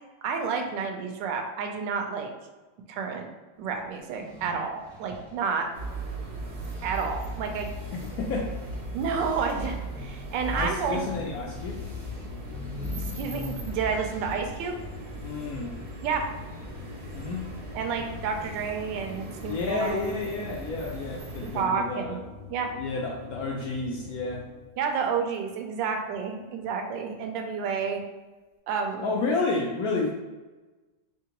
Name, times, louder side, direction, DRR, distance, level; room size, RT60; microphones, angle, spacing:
voice 1, 0.2-2.3 2.9-3.3 3.6-5.7 6.8-7.7 8.9-11.0 13.0-14.7 16.0-16.3 17.7-20.1 21.5-22.2 22.5-22.7 24.8-28.0 28.7-29.1, right 5 dB, 75° right, 4 dB, 1.2 m, -30 dB
sound 1, 4.0-6.4 6.7-14.6, left 1 dB, ahead, 0.4 m, -41 dB
sound 2, 5.7-21.6, right 1 dB, 55° right, 0.8 m, -39 dB
voice 2, 7.9-8.5 10.5-11.8 15.2-15.7 17.1-17.5 19.5-22.2 22.7-24.4 29.0-30.1, left 3 dB, 75° left, -1 dB, 0.8 m, -30 dB
sound 3, 11.0-24.7, left 4 dB, 50° left, 0.6 m, -45 dB
3.7 x 3.4 x 2.9 m, 1.2 s
omnidirectional pair, 2.0 m